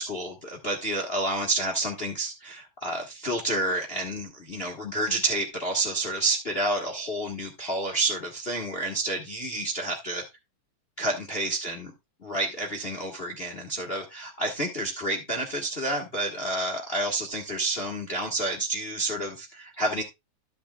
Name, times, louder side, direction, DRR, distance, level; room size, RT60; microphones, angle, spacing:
voice 1, 0.0-10.2 11.0-11.9 12.2-20.0, right 2 dB, 30° left, 1.0 m, -29 dB
13.5 x 6.9 x 2.3 m
omnidirectional pair, 3.4 m